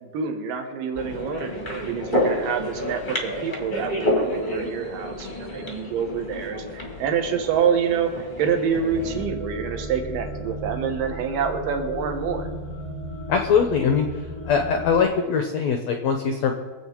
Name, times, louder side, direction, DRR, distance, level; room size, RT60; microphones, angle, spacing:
voice 1, 0.0-8.1 8.4-12.5, right 7 dB, 65° right, 5 dB, 2.8 m, -27 dB
sound 1, 0.9-9.2, left 1 dB, 30° left, 0.9 m, -29 dB
sound 2, 8.9-15.0, equal, 15° right, 1.6 m, -35 dB
voice 2, 13.3-14.1 14.5-16.5, left 6 dB, 80° left, 4 dB, 1.6 m, -21 dB
24.0 x 8.3 x 4.6 m, 1.4 s
omnidirectional pair, 4.5 m